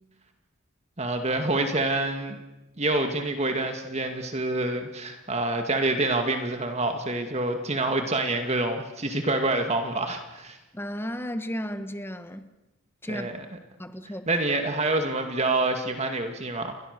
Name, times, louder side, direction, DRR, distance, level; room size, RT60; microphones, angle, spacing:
voice 1, 1.0-2.4 2.8-10.6 13.1-13.5 14.3-16.8, right 2 dB, 30° right, 5 dB, 2.1 m, -27 dB
voice 2, 10.7-12.5 13.0-13.3 13.8-14.3, equal, 10° left, 10 dB, 1.4 m, -34 dB
29.5 x 23.5 x 6.8 m, 0.99 s
head